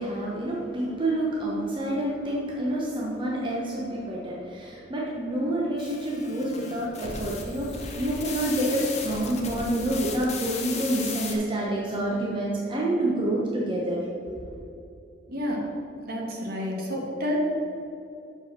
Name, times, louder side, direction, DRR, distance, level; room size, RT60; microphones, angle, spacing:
voice 1, 0.0-14.0, right 1 dB, 30° right, -4 dB, 1.0 m, -28 dB
sound 1, 5.8-11.4, left 4 dB, 40° left, 1.0 m, -36 dB
voice 2, 15.3-15.6 16.0-17.4, left 1 dB, 60° right, -2 dB, 1.6 m, -30 dB
6.3 x 5.4 x 5.8 m, 2.7 s
head